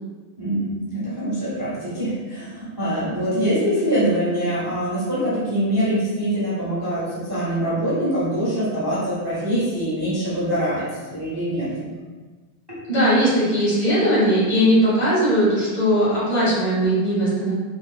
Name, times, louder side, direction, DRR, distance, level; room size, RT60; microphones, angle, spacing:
voice 1, 0.4-11.9, equal, 25° right, -11 dB, 0.5 m, -24 dB
voice 2, 12.9-17.5, equal, 35° left, -11 dB, 1.9 m, -19 dB
5.3 x 2.2 x 2.4 m, 1.3 s
omnidirectional pair, 2.2 m